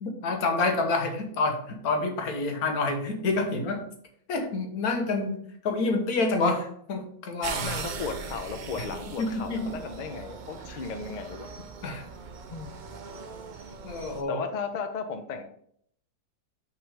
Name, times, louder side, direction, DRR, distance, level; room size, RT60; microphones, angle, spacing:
voice 1, 0.0-3.8 4.3-7.7 9.2-9.7 11.8-12.0 13.8-14.4, left 3 dB, 85° left, 4 dB, 1.5 m, -28 dB
sound 1, 7.4-14.2, right 5 dB, 65° right, 0.4 m, -39 dB
voice 2, 7.6-11.7 12.5-12.7 14.3-15.4, left 5 dB, 45° left, 7 dB, 0.6 m, -35 dB
6.1 x 3.9 x 4.8 m, 0.66 s
omnidirectional pair, 1.5 m